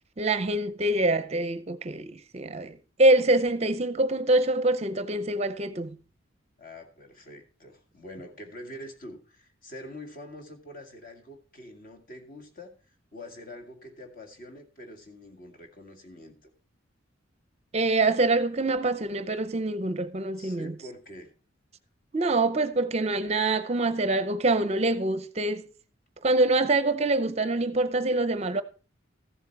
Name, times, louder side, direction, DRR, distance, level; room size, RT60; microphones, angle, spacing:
voice 1, 0.2-6.0 17.7-20.7 22.1-25.7 26.2-28.6, right 2 dB, 30° right, 0.6 m, -25 dB
voice 2, 6.6-16.5 20.4-21.3, left 1 dB, 45° left, 2.0 m, -45 dB
14.5 x 7.5 x 4.5 m
head